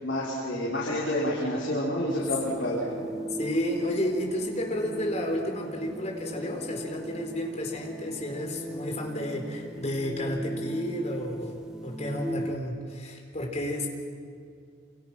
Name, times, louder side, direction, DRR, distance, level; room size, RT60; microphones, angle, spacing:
voice 1, 0.0-3.0, left 1 dB, 75° left, -7 dB, 5.5 m, -29 dB
sound 1, 2.1-12.6, right 1 dB, 5° right, 1.2 m, -38 dB
voice 2, 3.4-13.9, left 1 dB, 35° left, 2 dB, 4.3 m, -32 dB
29.0 x 28.5 x 6.2 m, 2.2 s
head